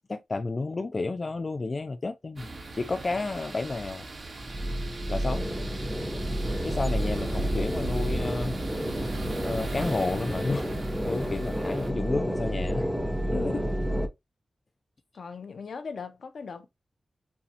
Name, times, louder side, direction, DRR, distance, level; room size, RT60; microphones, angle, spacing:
voice 1, 0.1-2.5 2.8-4.0 5.1-5.5 6.6-8.5 9.4-10.7 11.0-12.9, left 3 dB, 45° left, 0.5 m, -31 dB
sound 1, 2.4-11.9, right 2 dB, 50° right, 1.8 m, -38 dB
sound 2, 4.4-14.1, equal, 5° right, 0.9 m, -30 dB
voice 2, 13.3-13.7 15.1-16.7, left 5 dB, 75° left, 0.8 m, -37 dB
7.0 x 2.4 x 2.8 m
wide cardioid pair, 80°, 0 cm